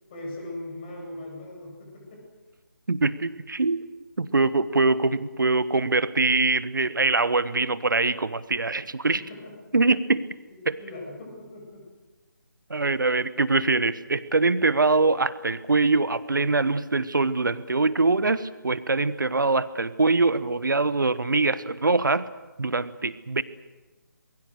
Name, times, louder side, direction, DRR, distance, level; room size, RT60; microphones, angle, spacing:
voice 1, 0.1-2.2 9.1-9.5 10.8-11.8, left 1 dB, 30° left, 0 dB, 8.0 m, -39 dB
voice 2, 2.9-3.8 4.2-9.2 9.7-10.2 10.7-10.8 12.7-22.2 22.6-23.4, right 3 dB, 70° right, 15 dB, 1.2 m, -23 dB
27.5 x 22.0 x 6.6 m, 1.2 s
figure-of-eight pair, 150°, 11 cm